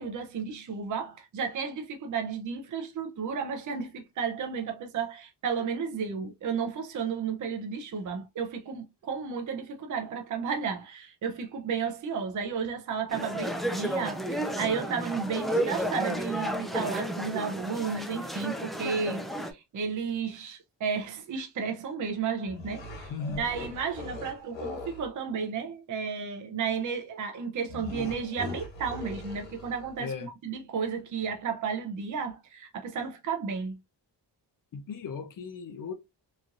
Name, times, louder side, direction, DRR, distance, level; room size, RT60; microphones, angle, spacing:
voice 1, 0.0-33.8, right 6 dB, 45° right, 0.6 m, -33 dB
sound 1, 13.1-19.5, right 1 dB, ahead, 0.4 m, -32 dB
sound 2, 22.5-25.1 27.7-30.0, left 2 dB, 90° left, 1.3 m, -40 dB
voice 2, 23.1-23.5 30.0-30.3 34.7-35.9, left 5 dB, 50° left, 0.6 m, -36 dB
3.0 x 2.5 x 2.4 m
cardioid pair, 95°, 43 cm